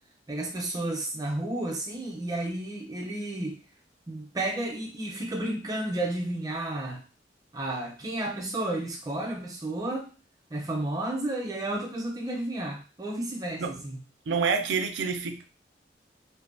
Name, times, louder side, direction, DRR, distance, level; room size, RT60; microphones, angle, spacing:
voice 1, 0.3-3.6 4.1-7.0 7.5-10.1 10.5-14.0, right 1 dB, 20° right, 1 dB, 0.5 m, -32 dB
voice 2, 14.3-15.5, right 5 dB, 80° right, 6 dB, 0.4 m, -28 dB
2.5 x 2.1 x 2.5 m, 0.35 s
head